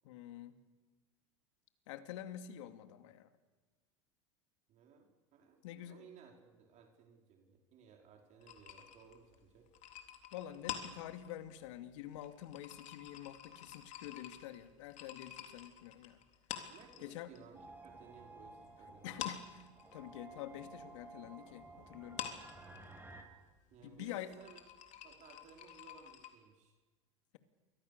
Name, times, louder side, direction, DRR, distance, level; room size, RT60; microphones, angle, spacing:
voice 1, 0.0-0.6 1.9-3.3 5.6-6.1 10.3-16.2 17.0-17.3 19.0-22.3 23.8-24.4, left 12 dB, 70° left, 8 dB, 2.5 m, -47 dB
voice 2, 4.7-9.7 16.7-19.2 23.7-24.6 25.0-26.7, right 6 dB, 45° right, 1 dB, 5.0 m, -59 dB
sound 1, 8.4-17.4 17.7-18.7 19.0-26.3, left 10 dB, 45° left, 3.7 m, -48 dB
sound 2, 17.5-23.2, right 3 dB, 15° right, 6.2 m, -55 dB
29.0 x 24.5 x 6.9 m, 1.3 s
hypercardioid pair, 90°, 16 cm